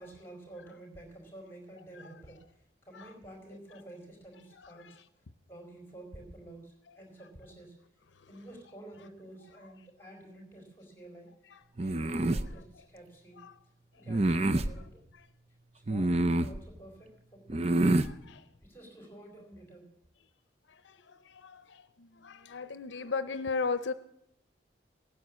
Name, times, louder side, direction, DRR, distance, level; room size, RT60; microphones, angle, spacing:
voice 1, 0.0-5.0 5.5-7.7 8.3-11.3 11.7-13.4 13.9-14.9 15.7-18.0 18.6-19.9, right 1 dB, 10° left, 2 dB, 4.3 m, -50 dB
voice 2, 1.8-2.5 2.9-3.2 4.3-5.1 6.9-7.0 8.3-8.5 9.6-9.7 11.4-11.6 12.4-12.6 13.3-13.6 14.1-14.3 14.8-14.9 15.1-15.3 17.9-18.4 20.7-23.9, left 4 dB, 80° left, 12 dB, 0.6 m, -39 dB
sound 1, 11.8-12.5 14.1-14.7 15.9-16.6 17.5-18.1, right 2 dB, 35° right, 0.6 m, -27 dB
17.5 x 9.5 x 7.4 m, 0.78 s
head